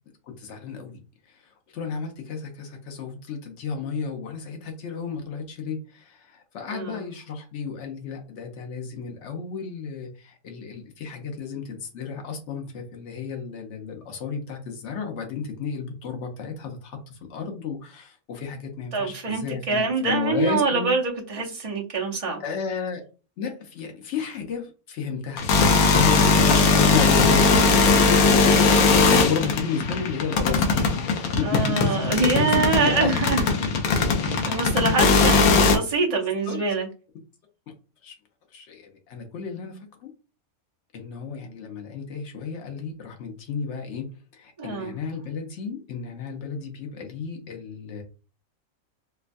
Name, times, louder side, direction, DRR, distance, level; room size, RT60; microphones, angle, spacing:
voice 1, 0.3-1.0 1.3-1.4 1.7-20.9 22.4-23.0 23.4-25.5 25.8-30.9 31.1-33.1 34.9-35.4 36.5-36.6 38.0-38.1 38.5-40.1 40.9-48.0, left 6 dB, 60° left, 1.0 m, -33 dB
voice 2, 18.9-22.4 26.1-26.5 31.4-33.7 34.2-36.9 44.6-44.9, right 4 dB, 40° right, 0.5 m, -25 dB
sound 1, 25.4-35.8, left 4 dB, 85° left, 1.2 m, -19 dB
4.5 x 2.2 x 2.5 m
omnidirectional pair, 1.5 m